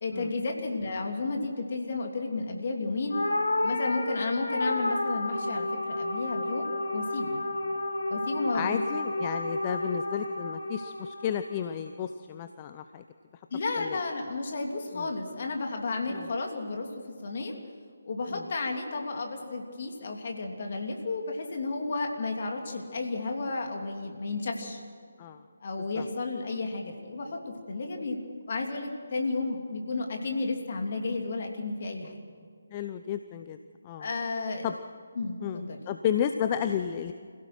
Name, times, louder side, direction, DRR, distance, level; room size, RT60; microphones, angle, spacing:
voice 1, 0.0-3.2 3.6-7.4 8.1-8.8 13.5-17.6 18.0-24.8 25.6-28.2 28.5-32.2 34.0-34.7 35.1-35.8, left 3 dB, 45° left, 2 dB, 3.1 m, -32 dB
sound 1, 3.1-11.7, left 2 dB, 70° left, 3.0 m, -31 dB
voice 2, 8.5-13.0 13.8-14.0 14.9-15.1 16.1-16.3 18.3-18.4 25.2-25.4 25.9-26.1 32.7-33.6 33.8-34.1 34.6-34.7 35.4-37.1, left 9 dB, 25° left, 9 dB, 0.7 m, -32 dB
26.5 x 17.0 x 6.1 m, 2.1 s
figure-of-eight pair, 150°, 0 cm